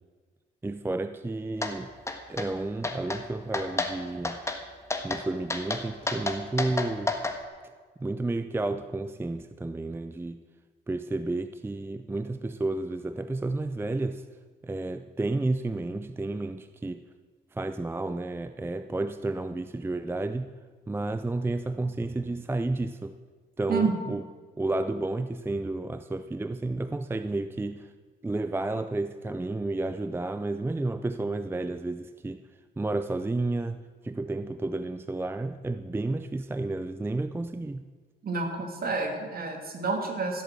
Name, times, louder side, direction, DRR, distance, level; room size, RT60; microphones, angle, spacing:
voice 1, 0.6-1.9 2.3-4.4 5.0-7.1 8.0-10.4 10.9-14.3 14.6-17.0 17.5-20.5 20.9-23.2 23.6-24.2 24.6-27.9 28.2-32.4 32.8-37.8, right 2 dB, 10° right, 10 dB, 0.5 m, -31 dB
sound 1, 1.6-1.7 2.1-2.5 2.8-3.2 3.5-3.9 4.2-4.6 4.9-5.2 5.5-7.4, left 2 dB, 15° left, 1.5 m, -30 dB
voice 2, 38.2-40.4, right 4 dB, 50° right, 3 dB, 2.7 m, -29 dB
15.0 x 8.1 x 7.6 m, 1.5 s
cardioid pair, 90°, 20 cm